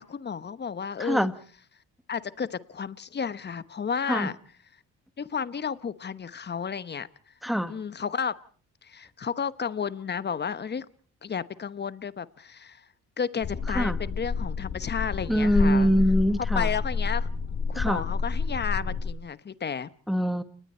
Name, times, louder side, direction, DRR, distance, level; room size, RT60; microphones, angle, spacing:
voice 1, 0.0-1.3 2.1-4.4 5.2-7.1 7.7-8.3 8.8-10.9 11.2-12.8 13.2-15.9 16.5-17.3 17.7-19.9, left 6 dB, 35° left, 1.1 m, -32 dB
voice 2, 1.0-1.3 4.1-4.3 7.4-7.7 13.7-14.0 15.3-16.7 17.7-18.0 20.1-20.4, equal, ahead, 1.6 m, -24 dB
sound 1, 13.4-19.1, left 5 dB, 55° left, 3.2 m, -29 dB
29.5 x 19.5 x 4.4 m
cardioid pair, 90°, 30 cm